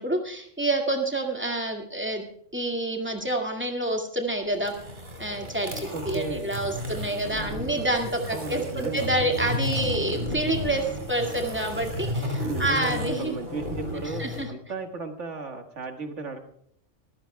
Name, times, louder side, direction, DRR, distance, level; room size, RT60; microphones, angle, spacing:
voice 1, 0.0-2.2 2.5-4.7 5.2-13.3 14.2-14.5, right 1 dB, 10° right, 2 dB, 2.1 m, -28 dB
sound 1, 4.5-14.4, left 1 dB, 45° right, 3.9 m, -33 dB
voice 2, 5.9-6.5 8.3-9.1 12.4-16.4, right 3 dB, 75° right, 5 dB, 2.0 m, -35 dB
26.5 x 14.5 x 2.3 m, 0.69 s
omnidirectional pair, 1.2 m